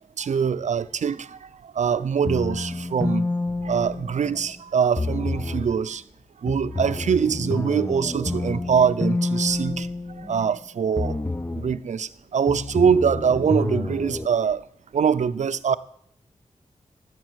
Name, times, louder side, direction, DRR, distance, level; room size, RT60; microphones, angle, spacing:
voice 1, 0.2-3.3 3.6-6.0 6.4-9.9 10.2-11.2 11.5-14.6 14.9-15.8, right 7 dB, 80° right, 0.7 m, -23 dB
sound 1, 2.3-4.5 5.0-5.8 6.5-10.6 11.0-11.8 12.5-14.3, left 2 dB, 15° left, 0.7 m, -29 dB
18.5 x 8.3 x 6.3 m
cardioid pair, 65°, 12 cm